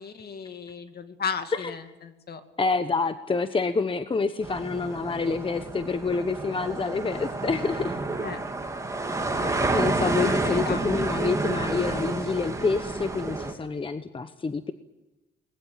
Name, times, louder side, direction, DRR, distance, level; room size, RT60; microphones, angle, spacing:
voice 1, 0.0-2.4 8.2-8.4 9.3-9.5 10.2-10.8, left 6 dB, 50° left, 8 dB, 2.4 m, -35 dB
voice 2, 2.6-8.0 9.6-14.7, left 4 dB, 25° left, 10 dB, 1.0 m, -27 dB
sound 1, 4.4-13.5, right 2 dB, 15° right, 3.3 m, -29 dB
21.5 x 20.5 x 8.9 m, 1.0 s
cardioid pair, 90°, 20 cm